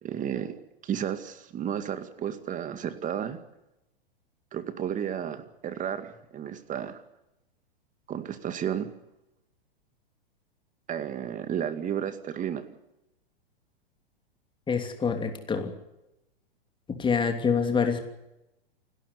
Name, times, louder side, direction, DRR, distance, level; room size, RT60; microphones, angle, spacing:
voice 1, 0.0-3.4 4.5-7.0 8.1-8.9 10.9-12.6, right 9 dB, 25° right, 11 dB, 2.2 m, -32 dB
voice 2, 14.7-15.7 17.0-18.0, left 6 dB, 15° left, 5 dB, 3.0 m, -26 dB
28.5 x 12.5 x 9.8 m, 0.90 s
hypercardioid pair, 105°, 29 cm